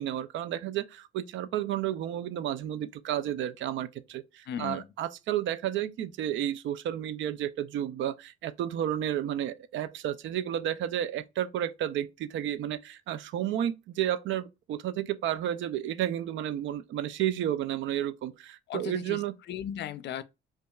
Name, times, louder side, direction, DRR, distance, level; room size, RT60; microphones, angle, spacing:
voice 1, 0.0-19.3, right 11 dB, 75° right, 0.4 m, -32 dB
voice 2, 4.5-4.9 18.7-20.2, left 9 dB, 60° left, 0.4 m, -37 dB
5.2 x 2.4 x 2.3 m
cardioid pair, 90°, 20 cm